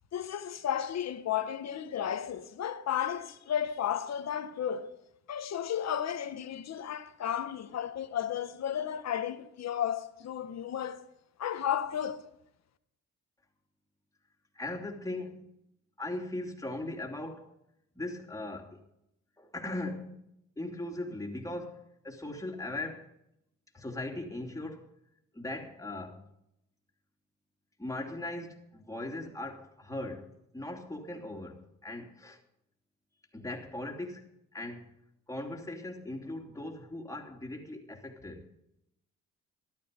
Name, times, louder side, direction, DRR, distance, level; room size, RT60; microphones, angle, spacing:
voice 1, 0.1-5.0 5.3-11.0 11.4-12.2, left 9 dB, 60° left, 1.5 m, -33 dB
voice 2, 14.5-15.5 16.0-17.6 17.9-18.8 19.4-20.2 20.6-23.1 23.7-24.9 25.3-26.3 27.8-32.4 33.3-34.2 34.5-34.9 35.3-38.5, left 2 dB, 10° left, 3.0 m, -39 dB
14.0 x 12.0 x 5.3 m
cardioid pair, 90°, 30 cm